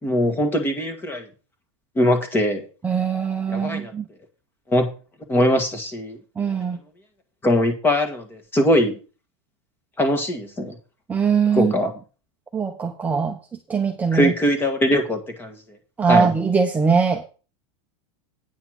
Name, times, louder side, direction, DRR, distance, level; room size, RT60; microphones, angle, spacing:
voice 1, 0.0-1.2 1.9-2.7 3.5-3.9 4.7-4.9 5.3-6.2 7.4-9.0 10.0-10.8 11.5-11.9 14.1-15.6 16.1-16.3, left 1 dB, 15° left, 7 dB, 1.7 m, -21 dB
voice 2, 2.8-4.1 6.4-6.8 11.1-11.7 12.5-13.4 13.7-14.3 16.0-17.2, right 5 dB, 10° right, 2 dB, 0.8 m, -21 dB
9.4 x 5.6 x 6.1 m, 0.35 s
supercardioid pair, 155°, 16 cm